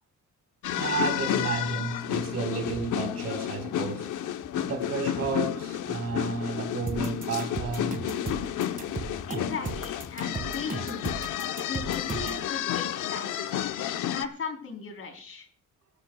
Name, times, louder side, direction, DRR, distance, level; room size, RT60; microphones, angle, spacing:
sound 1, 0.6-14.3, left 11 dB, 80° left, 0.9 m, -31 dB
voice 1, 0.8-4.1 4.5-8.1, right 4 dB, 55° right, 4.3 m, -32 dB
sound 2, 2.7-2.9 3.1-3.7 4.1-4.2 4.4-5.4 6.0-6.2 6.5-6.6 6.8-8.4 8.8-10.2, left 3 dB, 30° left, 6.5 m, -48 dB
sound 3, 6.9-12.4, right 4 dB, 25° right, 2.0 m, -35 dB
voice 2, 9.2-11.3 11.6-13.4 13.9-15.5, left 5 dB, 45° left, 3.7 m, -38 dB
23.5 x 13.0 x 2.3 m
cardioid pair, 145°, 30 cm